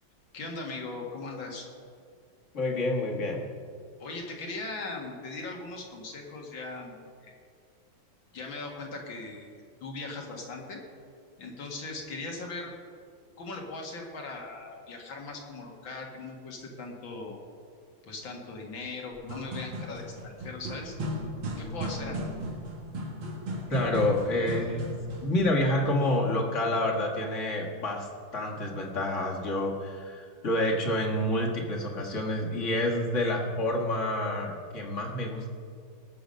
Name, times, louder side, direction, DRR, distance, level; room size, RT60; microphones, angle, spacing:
voice 1, 0.3-1.7 4.0-7.0 7.2-7.3 8.3-10.8 11.4-12.7 13.4-17.4 18.1-21.0 21.6-22.3, left 3 dB, 70° left, 0 dB, 2.5 m, -39 dB
voice 2, 2.5-3.4 23.7-24.9 25.2-28.1 28.3-35.5, left 1 dB, 40° left, -1 dB, 1.8 m, -28 dB
sound 1, 19.2-25.4, equal, 80° right, 2.5 m, -36 dB
19.5 x 7.0 x 5.3 m, 2.3 s
omnidirectional pair, 2.2 m